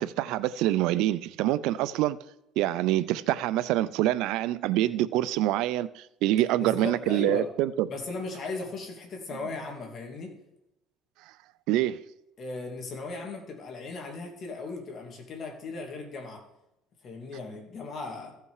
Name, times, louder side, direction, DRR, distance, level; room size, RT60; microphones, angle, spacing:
voice 1, 0.0-2.2 2.6-7.9 11.7-12.0, right 14 dB, 75° right, 0.4 m, -26 dB
voice 2, 6.6-7.5 7.9-10.3 12.4-16.4 17.0-18.3, left 3 dB, 40° left, 2.5 m, -37 dB
15.0 x 5.6 x 4.8 m
cardioid pair, 130°, 0 cm